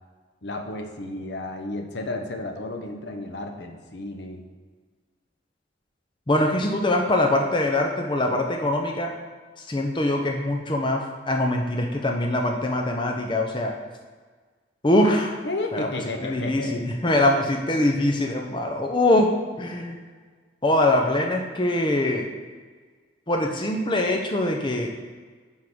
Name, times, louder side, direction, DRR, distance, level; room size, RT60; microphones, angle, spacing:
voice 1, 0.4-4.4 15.4-16.9, left 2 dB, 65° left, 4 dB, 0.9 m, -32 dB
voice 2, 6.3-9.1 9.7-13.7 14.8-15.4 15.7-15.9 16.2-19.3 19.6-20.0 20.6-22.3 23.3-24.9, left 1 dB, 25° left, 1 dB, 0.7 m, -23 dB
9.5 x 3.7 x 6.2 m, 1.5 s
head